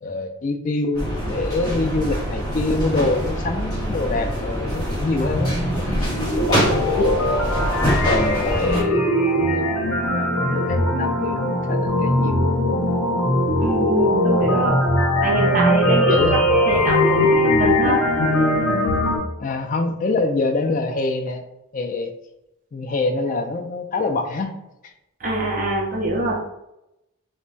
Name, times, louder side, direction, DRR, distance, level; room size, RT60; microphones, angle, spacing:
voice 1, 0.0-7.1 8.0-12.5 16.1-16.5 19.4-21.4 21.7-22.1 22.7-24.5 24.8-24.9, left 2 dB, 35° left, 5 dB, 0.3 m, -25 dB
sound 1, 0.9-8.8, equal, 20° left, 1.2 m, -25 dB
sound 2, 5.2-19.2, left 1 dB, 65° left, 0.7 m, -20 dB
voice 2, 13.6-14.8 15.2-16.4 16.7-18.0 25.2-26.3, right 1 dB, 40° right, -2 dB, 0.6 m, -24 dB
2.2 x 2.1 x 3.8 m, 0.88 s
head